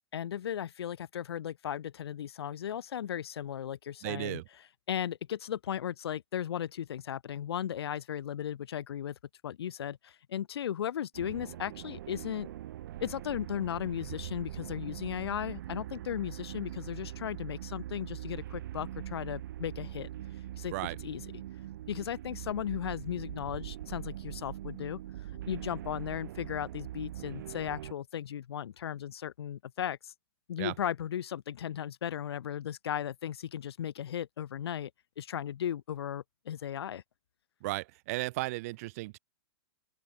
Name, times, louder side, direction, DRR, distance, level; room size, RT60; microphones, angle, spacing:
voice 1, 0.1-4.4 4.9-9.1 9.4-12.5 13.0-20.1 20.6-20.7 21.0-21.2 21.9-25.0 25.5-30.1 30.5-34.9 35.2-37.0, left 10 dB, 70° left, 2.8 m, -36 dB
voice 2, 4.0-4.5 20.7-21.0 30.6-30.7 37.6-39.2, right 21 dB, 35° right, 1.6 m, -35 dB
sound 1, 11.1-27.9, right 13 dB, 50° right, 0.9 m, -42 dB
open air
hypercardioid pair, 170°, 14 cm